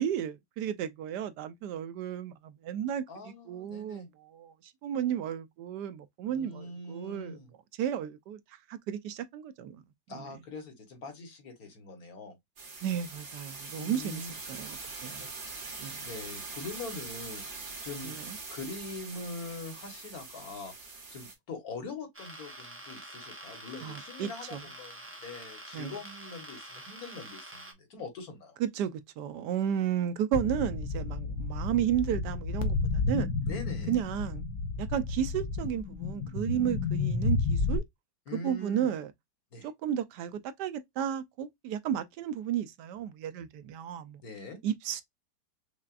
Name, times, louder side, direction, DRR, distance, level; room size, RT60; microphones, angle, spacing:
voice 1, 0.0-7.4 7.8-8.4 8.7-9.8 10.1-10.3 12.8-15.3 15.8-16.1 18.0-18.4 23.8-24.6 25.7-26.0 28.6-32.8 33.0-33.3 33.9-34.4 34.8-37.8 38.3-39.1 39.6-44.2 44.6-45.0, right 9 dB, 75° right, 1.1 m, -33 dB
voice 2, 3.1-4.1 6.3-7.5 10.1-12.4 13.7-14.3 15.0-15.3 15.7-18.2 18.5-20.7 21.1-28.6 33.5-34.0 38.3-38.9 39.5-39.7 44.2-44.6, left 3 dB, 60° left, 1.6 m, -43 dB
sound 1, 12.6-21.3, right 3 dB, 55° right, 2.1 m, -43 dB
sound 2, 22.1-27.7, right 1 dB, 10° right, 0.7 m, -46 dB
sound 3, 30.3-37.8, left 3 dB, 80° left, 1.4 m, -31 dB
5.7 x 2.3 x 2.4 m
omnidirectional pair, 1.9 m